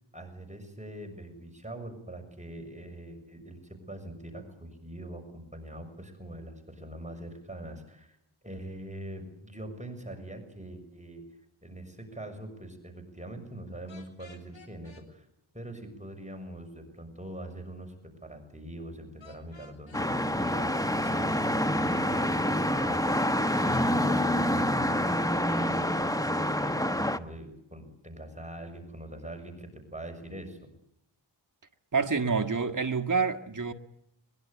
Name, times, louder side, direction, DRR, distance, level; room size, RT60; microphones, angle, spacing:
voice 1, 0.1-8.2 8.4-11.2 11.6-15.2 15.5-30.7, right 1 dB, 15° right, 6.5 m, -43 dB
sound 1, 13.9-15.1 19.2-20.1 21.7-22.1, left 3 dB, 70° left, 4.5 m, -54 dB
sound 2, 19.9-27.2, left 1 dB, 5° left, 1.2 m, -27 dB
voice 2, 31.9-33.7, right 5 dB, 40° right, 1.7 m, -27 dB
23.0 x 22.0 x 8.3 m
wide cardioid pair, 60°, 47 cm